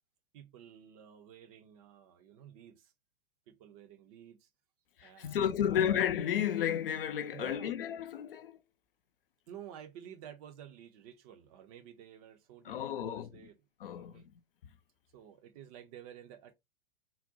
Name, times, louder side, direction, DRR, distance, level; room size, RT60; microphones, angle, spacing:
voice 1, 0.3-2.9 3.5-4.5 5.0-5.9 7.3-7.7 9.5-13.6 13.9-14.3 15.1-16.5, right 9 dB, 35° right, 0.6 m, -52 dB
voice 2, 5.0-8.6 12.7-13.3 13.8-14.3, left 9 dB, 60° left, 0.5 m, -32 dB
3.7 x 2.1 x 2.6 m
figure-of-eight pair, 100°, 31 cm